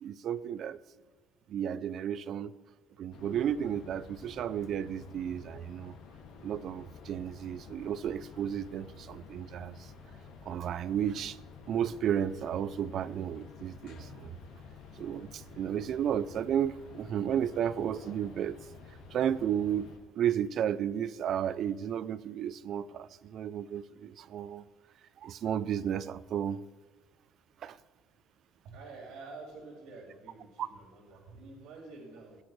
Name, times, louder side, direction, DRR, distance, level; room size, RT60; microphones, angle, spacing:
voice 1, 0.0-0.8 1.5-2.5 3.0-5.9 6.4-9.9 10.5-11.4 11.7-14.4 15.0-18.6 19.1-24.6 25.2-26.6 27.6-27.8 30.6-30.7, right 9 dB, 45° right, 16 dB, 0.5 m, -33 dB
sound 1, 3.1-20.0, left 5 dB, 70° left, 2.6 m, -51 dB
voice 2, 28.6-32.4, right 3 dB, 75° right, -6 dB, 4.8 m, -48 dB
17.0 x 12.5 x 3.3 m, 1.4 s
cardioid pair, 155°, 0 cm